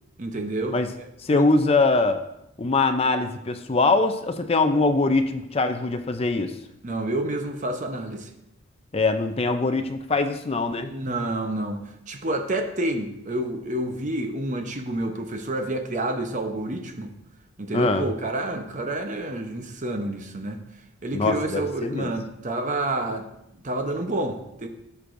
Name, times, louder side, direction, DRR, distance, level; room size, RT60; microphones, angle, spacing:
voice 1, 0.2-1.5 6.8-8.3 10.8-17.1 17.6-20.6 21.0-23.2 23.6-24.7, right 1 dB, 35° right, 5 dB, 0.8 m, -29 dB
voice 2, 1.2-2.2 2.6-6.5 8.9-10.9 17.7-18.1 21.1-22.1, left 3 dB, 30° left, 7 dB, 0.5 m, -22 dB
15.0 x 6.7 x 2.6 m, 0.82 s
head